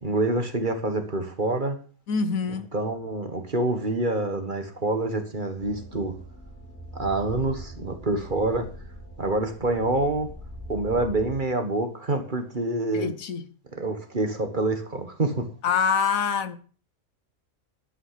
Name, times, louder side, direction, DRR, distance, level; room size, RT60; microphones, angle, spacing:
voice 1, 0.0-1.8 2.7-6.2 6.9-8.7 9.2-10.3 10.7-13.1 13.7-15.5, right 2 dB, 35° right, 1.6 m, -26 dB
voice 2, 2.1-2.7 12.9-13.5 15.6-16.6, left 6 dB, 75° left, 1.3 m, -25 dB
sound 1, 5.6-11.5, equal, 10° left, 2.2 m, -42 dB
11.0 x 8.9 x 5.8 m
omnidirectional pair, 1.5 m